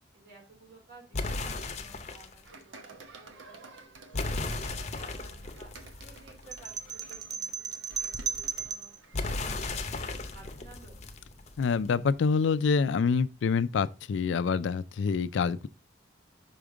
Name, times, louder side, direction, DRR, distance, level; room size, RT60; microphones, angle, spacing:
voice 1, 0.1-3.8 4.1-5.7 6.0-8.9 9.2-11.0, right 3 dB, 55° right, 3.2 m, -54 dB
sound 1, 1.1-2.4 4.1-6.9 9.1-11.9, left 3 dB, 35° left, 0.7 m, -35 dB
sound 2, 2.4-10.6, right 2 dB, 80° right, 0.9 m, -51 dB
sound 3, 6.5-9.0, right 5 dB, 20° right, 0.3 m, -35 dB
voice 2, 11.6-15.7, left 5 dB, 75° left, 0.4 m, -26 dB
5.8 x 5.1 x 3.6 m
head